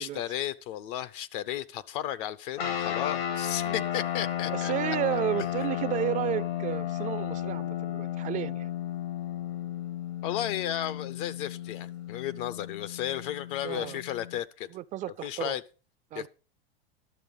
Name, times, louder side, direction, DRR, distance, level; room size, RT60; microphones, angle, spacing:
voice 1, 0.0-5.0 10.2-14.7 15.0-15.6 16.1-16.3, left 11 dB, 60° left, 0.7 m, -34 dB
sound 1, 2.6-14.4, left 11 dB, 85° left, 3.0 m, -33 dB
voice 2, 4.5-8.7 13.6-14.0 14.7-15.6 16.1-16.3, right 13 dB, 25° right, 0.4 m, -32 dB
11.5 x 7.1 x 5.3 m
supercardioid pair, 130°, 30 cm